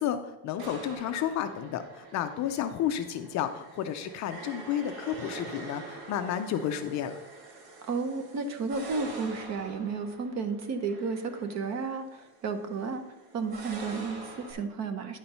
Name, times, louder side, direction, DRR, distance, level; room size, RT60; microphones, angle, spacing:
voice 1, 0.0-7.2, left 9 dB, 40° left, 8 dB, 0.5 m, -31 dB
sound 1, 0.6-14.5, right 2 dB, 55° right, 1.7 m, -45 dB
voice 2, 7.8-13.0 13.3-15.2, right 4 dB, 35° right, 8 dB, 0.8 m, -32 dB
10.5 x 4.3 x 5.4 m, 1.0 s
cardioid pair, 155°, 45 cm